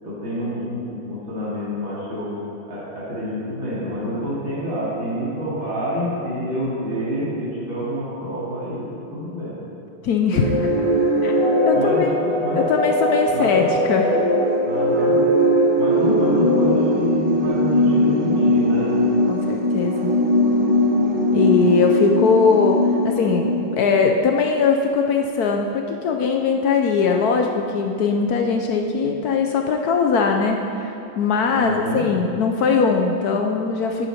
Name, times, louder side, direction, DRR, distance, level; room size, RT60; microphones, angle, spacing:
voice 1, 0.0-2.3 2.7-9.6 11.7-12.6 13.3-13.7 14.6-15.2 15.8-18.9 31.5-32.0, equal, 70° right, -10 dB, 3.4 m, -28 dB
voice 2, 10.0-10.7 11.2-11.3 11.7-12.2 12.6-14.2 19.3-20.1 21.3-34.1, left 5 dB, 70° left, 3 dB, 0.9 m, -20 dB
sound 1, 10.3-24.0, equal, 30° right, 1.3 m, -20 dB
11.0 x 9.0 x 4.3 m, 2.7 s
omnidirectional pair, 2.2 m